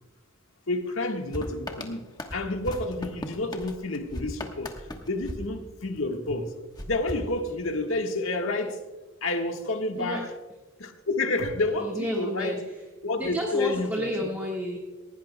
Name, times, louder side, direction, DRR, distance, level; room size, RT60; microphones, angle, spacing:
voice 1, 0.7-2.0 2.3-4.8 5.1-6.5 6.8-8.8 9.2-10.3 10.8-12.6 13.0-14.1, left 2 dB, 75° left, 4 dB, 1.5 m, -29 dB
sound 1, 1.3-6.2 6.7-8.0, left 1 dB, 20° left, 1.1 m, -39 dB
voice 2, 11.7-14.8, equal, 10° right, -2 dB, 1.6 m, -32 dB
19.0 x 16.5 x 2.2 m, 1.2 s
head